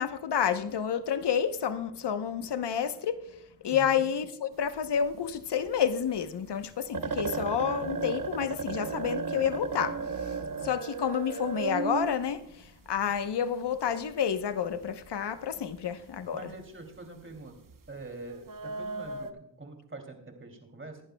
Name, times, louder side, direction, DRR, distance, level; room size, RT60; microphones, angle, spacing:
voice 1, 0.0-3.3 3.6-10.0 10.6-12.4 12.9-16.5, left 8 dB, 70° left, 1.0 m, -29 dB
voice 2, 3.7-4.0 16.3-17.5 17.9-21.0, right 2 dB, 30° right, 2.8 m, -44 dB
sound 1, 4.6-5.4 5.7-5.8 6.2-6.3 6.6-6.7 6.9-13.3 14.4-14.5 14.8-15.1 15.4-15.7 16.1-16.2 16.6-17.0 17.6-19.3, right 4 dB, 50° right, 1.0 m, -35 dB
20.5 x 11.5 x 2.3 m
cardioid pair, 70°, 42 cm